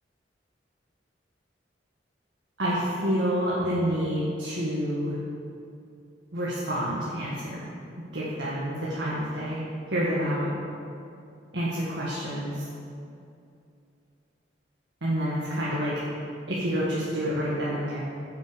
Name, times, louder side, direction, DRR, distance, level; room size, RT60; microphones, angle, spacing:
voice 1, 2.6-5.2 6.3-7.6 8.1-9.6 9.9-10.5 11.5-12.6 15.0-15.9 16.5-18.0, equal, 75° right, -7 dB, 1.8 m, -28 dB
9.7 x 8.2 x 5.3 m, 2.5 s
head